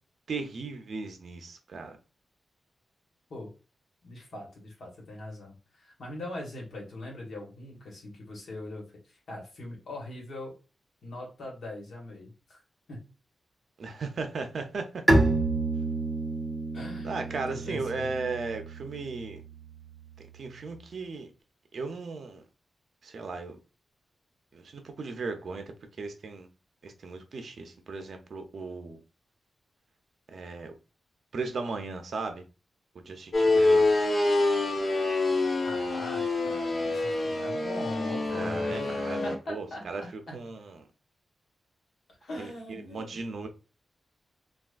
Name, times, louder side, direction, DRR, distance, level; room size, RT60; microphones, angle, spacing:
voice 1, 0.3-2.0 13.8-15.0 17.0-19.4 20.3-21.3 21.7-22.4 23.0-23.6 24.5-25.6 26.0-26.5 26.8-29.0 30.3-30.7 31.3-32.4 32.9-33.9 38.3-40.8 42.4-43.5, right 4 dB, 60° right, 0.5 m, -36 dB
voice 2, 4.0-10.6 11.0-12.6 12.9-13.0 16.7-18.1 35.6-39.9 40.3-40.4 42.2-43.2, left 1 dB, 75° left, 1.2 m, -41 dB
Bowed string instrument, 15.1-20.7, right 2 dB, 15° right, 0.6 m, -29 dB
sound 1, 33.3-39.3, left 2 dB, 40° left, 0.6 m, -26 dB
3.4 x 2.3 x 2.4 m
wide cardioid pair, 140°, 0 cm